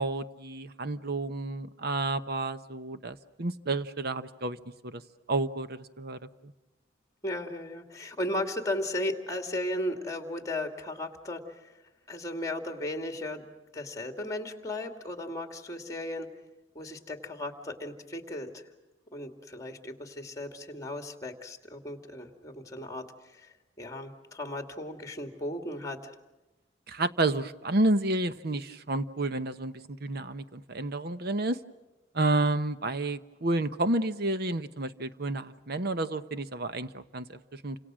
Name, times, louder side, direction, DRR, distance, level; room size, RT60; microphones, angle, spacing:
voice 1, 0.0-4.6 4.8-5.0 5.3-6.5 26.9-31.6 32.1-37.8, right 2 dB, 55° right, 12 dB, 1.0 m, -30 dB
voice 2, 7.2-11.8 12.1-13.4 13.7-16.3 16.7-18.6 19.1-26.1, left 1 dB, 15° left, 5 dB, 2.5 m, -36 dB
29.0 x 26.5 x 6.3 m, 1.1 s
head